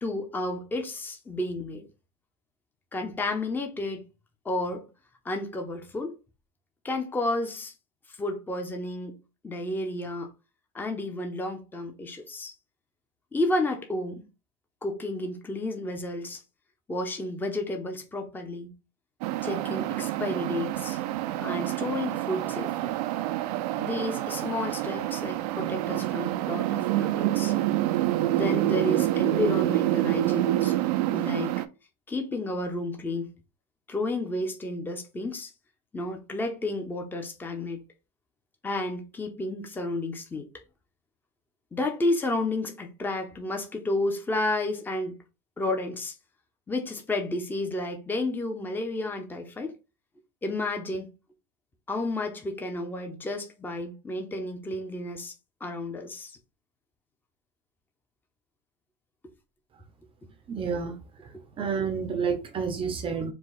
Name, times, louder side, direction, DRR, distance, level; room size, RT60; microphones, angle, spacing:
voice 1, 0.0-1.8 2.9-4.0 4.4-4.8 5.2-6.2 6.8-7.7 8.1-9.2 9.4-10.3 10.7-12.5 13.3-14.2 14.8-16.4 16.9-18.7 19.4-21.0 21.4-22.9 23.8-27.5 28.3-30.8 31.1-31.6 32.1-33.3 33.9-35.5 35.9-37.8 38.6-40.5 41.7-45.2 45.6-46.1 46.7-49.7 50.4-51.1 51.9-55.3 55.6-56.4, left 2 dB, 10° left, 0.7 m, -31 dB
sound 1, 19.2-31.7, right 15 dB, 70° right, 0.5 m, -27 dB
voice 2, 60.5-60.9 61.6-63.3, right 6 dB, 25° right, 0.7 m, -29 dB
4.7 x 2.3 x 4.1 m
supercardioid pair, 135°, 21 cm